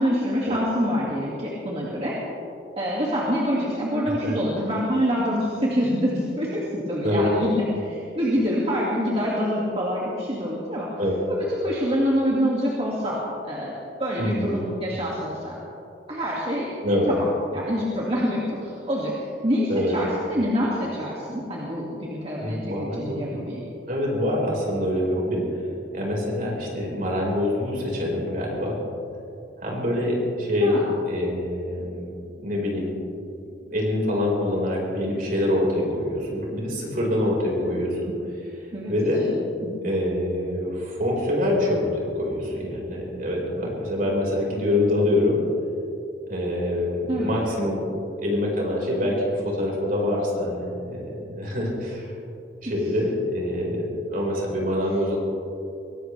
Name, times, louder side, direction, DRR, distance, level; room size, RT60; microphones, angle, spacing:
voice 1, 0.0-2.2 2.8-10.9 11.3-13.2 13.4-13.7 14.0-15.6 16.1-17.2 17.5-23.6 30.6-30.9 38.7-39.3 39.6-39.9 47.1-47.4 52.7-52.9, equal, 35° right, -5 dB, 2.2 m, -26 dB
voice 2, 14.2-14.6 16.8-17.1 19.7-19.9 22.4-23.2 23.9-25.4 25.9-28.8 29.6-30.8 31.0-32.1 32.4-32.9 33.7-38.1 38.4-38.6 38.9-39.3 39.8-45.4 46.3-47.9 48.2-52.1 52.6-55.2, left 1 dB, 50° right, -3 dB, 4.9 m, -25 dB
23.0 x 18.0 x 3.4 m, 2.7 s
head